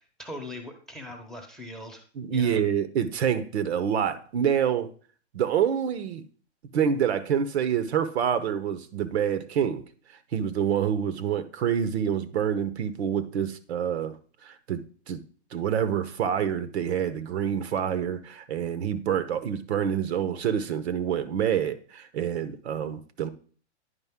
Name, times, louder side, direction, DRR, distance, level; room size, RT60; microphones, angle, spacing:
voice 1, 0.2-2.0 2.3-2.6, left 1 dB, ahead, 0.8 m, -40 dB
voice 2, 2.2-4.9 5.3-6.2 6.7-9.8 10.3-14.2 14.4-15.2 15.5-23.3, right 8 dB, 65° right, 0.9 m, -27 dB
9.8 x 5.1 x 3.6 m
hypercardioid pair, 140°, 35 cm